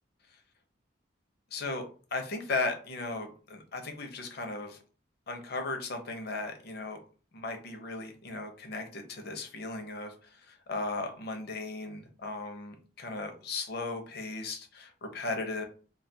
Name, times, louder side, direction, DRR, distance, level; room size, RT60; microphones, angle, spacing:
voice 1, 1.5-1.8 2.1-4.8 5.3-7.0 7.3-15.6, left 3 dB, 60° left, 5 dB, 0.6 m, -36 dB
2.3 x 2.3 x 2.6 m, 0.38 s
head